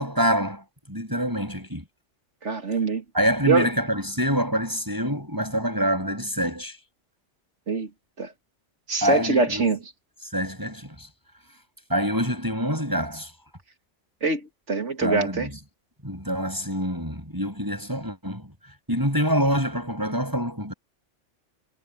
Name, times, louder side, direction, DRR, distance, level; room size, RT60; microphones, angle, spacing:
voice 1, 0.0-1.8 3.1-6.8 9.0-9.7 10.3-11.1 11.9-13.3 15.0-15.6 16.0-18.5 18.9-20.7, equal, 15° right, 6.7 m, -26 dB
voice 2, 2.4-3.0 3.5-3.7 7.7-7.9 8.2-8.3 8.9-9.8 14.2-15.5, right 4 dB, 70° right, 2.5 m, -24 dB
omnidirectional pair, 1.3 m